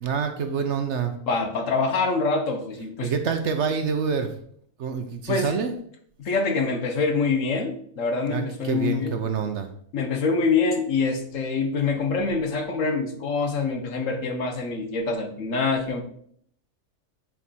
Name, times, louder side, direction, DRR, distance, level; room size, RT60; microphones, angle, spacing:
voice 1, 0.0-1.1 3.0-4.3 4.8-5.7 8.3-9.7, right 6 dB, 60° right, 7 dB, 0.9 m, -26 dB
voice 2, 1.3-3.1 5.3-5.5 6.2-9.2 9.9-16.0, left 4 dB, 65° left, 6 dB, 1.3 m, -25 dB
7.6 x 4.7 x 4.2 m, 0.64 s
omnidirectional pair, 1.5 m